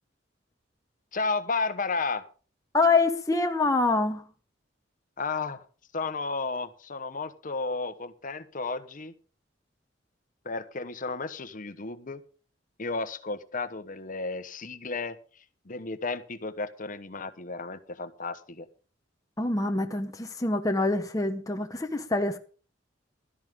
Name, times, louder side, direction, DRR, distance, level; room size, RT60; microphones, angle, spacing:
voice 1, 1.1-2.3 5.2-5.6 5.9-9.1 10.4-12.2 12.8-15.2 15.7-18.7, left 3 dB, 45° left, 1.2 m, -33 dB
voice 2, 2.7-4.3 19.4-22.4, left 3 dB, 20° left, 0.9 m, -25 dB
16.0 x 12.5 x 3.7 m
head